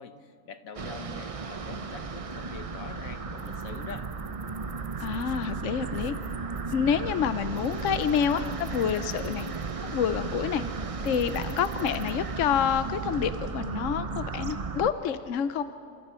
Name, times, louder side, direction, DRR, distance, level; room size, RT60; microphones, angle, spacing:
voice 1, 0.0-4.1, left 6 dB, 85° left, 8 dB, 1.6 m, -44 dB
sound 1, 0.7-14.9, right 4 dB, 35° right, 0.6 m, -35 dB
voice 2, 5.0-6.1 6.7-9.5 9.8-10.6 11.0-15.6, left 8 dB, 70° left, 11 dB, 1.0 m, -28 dB
28.0 x 26.5 x 4.4 m, 2.5 s
omnidirectional pair, 1.4 m